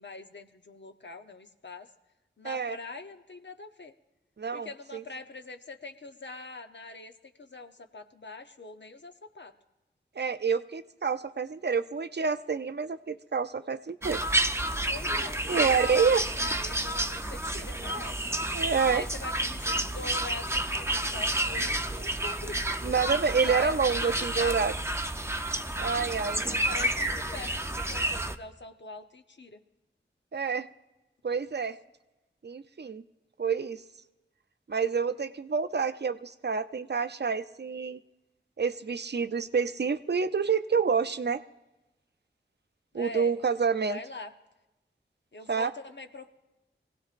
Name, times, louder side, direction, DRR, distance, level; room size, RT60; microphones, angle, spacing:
voice 1, 0.0-1.9 2.4-3.9 4.5-7.1 7.4-9.5 14.9-16.1 16.4-18.2 18.9-22.8 23.5-23.7 24.0-24.5 26.4-29.6 42.9-43.3 43.9-44.3 45.3-46.3, left 3 dB, 65° left, 6 dB, 0.8 m, -43 dB
voice 2, 2.4-2.8 4.4-5.0 10.2-14.2 15.5-16.2 18.5-19.0 22.8-24.7 25.8-26.4 30.3-30.7 31.2-31.8 32.4-33.0 33.4-33.8 34.7-38.0 38.6-41.4 42.9-44.0 45.5-45.7, right 5 dB, 60° right, 11 dB, 0.5 m, -28 dB
sound 1, 14.0-28.4, right 1 dB, 15° right, 0.6 m, -30 dB
23.0 x 16.5 x 2.5 m, 1.0 s
wide cardioid pair, 45°, 20 cm